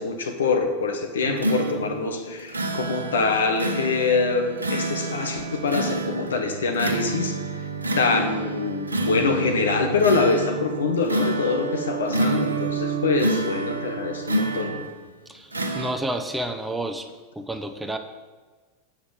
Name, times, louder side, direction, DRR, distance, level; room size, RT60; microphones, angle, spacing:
voice 1, 0.0-7.6 7.9-14.7, left 4 dB, 75° left, 4 dB, 1.4 m, -24 dB
sound 1, 1.2-15.0 15.5-15.9, right 2 dB, 85° right, 1.1 m, -28 dB
voice 2, 15.3-17.1 17.4-18.0, right 1 dB, 5° right, 6 dB, 0.9 m, -30 dB
8.6 x 5.9 x 7.3 m, 1.3 s
figure-of-eight pair, 90°, 0 cm